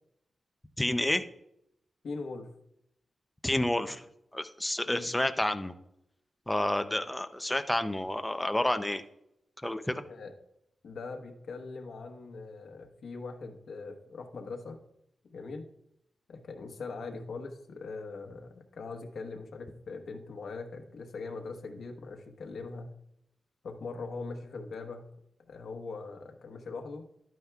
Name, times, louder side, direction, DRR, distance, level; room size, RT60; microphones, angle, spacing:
voice 1, 0.8-1.2 3.4-4.0 4.3-5.7 6.5-9.0 9.6-10.0, left 1 dB, 10° left, 9 dB, 0.5 m, -29 dB
voice 2, 2.0-2.5 4.9-5.1 10.1-10.3 10.8-14.8 15.3-15.7 16.3-22.9 23.6-25.1 25.4-27.0, left 4 dB, 75° left, 3 dB, 1.1 m, -41 dB
11.5 x 9.1 x 2.3 m, 0.79 s
wide cardioid pair, 145°, 0 cm